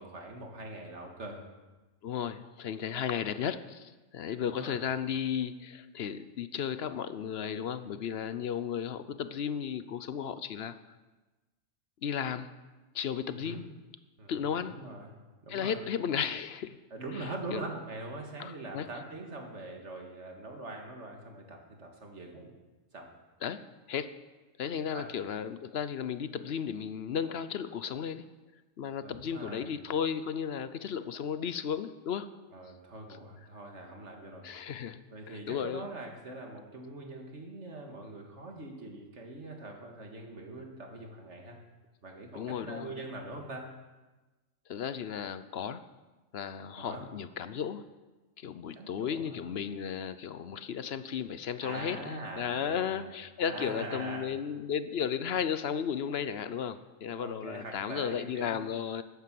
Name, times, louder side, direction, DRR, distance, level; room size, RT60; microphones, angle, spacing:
voice 1, 0.0-1.4 4.4-4.8 13.3-13.6 14.2-14.3 14.7-15.2 15.4-15.8 16.9-22.5 22.9-23.1 24.9-25.1 29.0-29.7 32.5-34.5 35.1-41.6 42.0-43.7 46.8-47.0 48.7-49.5 51.6-53.1 53.4-54.3 57.2-58.6, right 2 dB, 60° right, 2 dB, 2.2 m, -43 dB
voice 2, 2.0-10.7 12.0-12.5 12.9-13.6 14.3-14.7 15.5-16.8 17.1-17.6 18.4-18.9 23.4-23.6 23.9-24.1 24.6-28.2 28.8-32.3 34.4-35.0 35.3-35.9 42.3-43.1 44.7-45.8 46.3-47.8 48.4-59.0, left 8 dB, 55° left, 12 dB, 0.8 m, -34 dB
12.5 x 9.5 x 7.6 m, 1.2 s
omnidirectional pair, 1.4 m